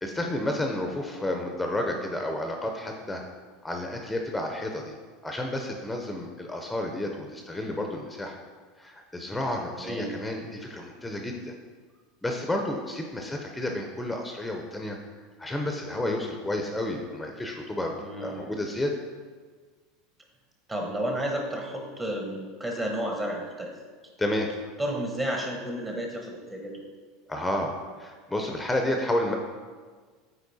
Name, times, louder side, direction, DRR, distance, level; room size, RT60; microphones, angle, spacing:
voice 1, 0.0-3.2 3.6-4.9 5.2-8.4 8.8-11.5 12.2-15.0 15.4-19.0 24.2-24.5 27.3-29.4, left 1 dB, 10° left, 2 dB, 0.6 m, -31 dB
voice 2, 9.8-10.1 18.0-18.6 20.7-23.7 24.8-26.8, right 1 dB, 20° right, 0 dB, 1.0 m, -32 dB
8.2 x 4.2 x 2.7 m, 1.5 s
hypercardioid pair, 90°, 0 cm